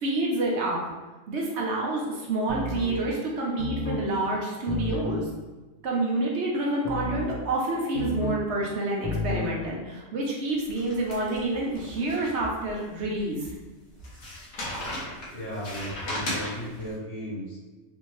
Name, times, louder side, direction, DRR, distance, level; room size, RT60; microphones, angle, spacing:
voice 1, 0.0-0.8 1.3-5.3 5.8-13.5, right 2 dB, 65° right, -2 dB, 0.9 m, -28 dB
sound 1, 2.5-3.0 3.6-4.1 4.7-5.2 6.8-7.4 7.9-8.5 9.0-9.5, left 3 dB, 50° left, 0.7 m, -31 dB
sound 2, 10.7-12.7 13.2-13.3 14.0-16.9, left 1 dB, 90° left, 1.4 m, -36 dB
voice 2, 15.3-17.6, equal, 70° left, -7 dB, 1.7 m, -35 dB
3.4 x 2.7 x 3.0 m, 1.2 s
omnidirectional pair, 1.3 m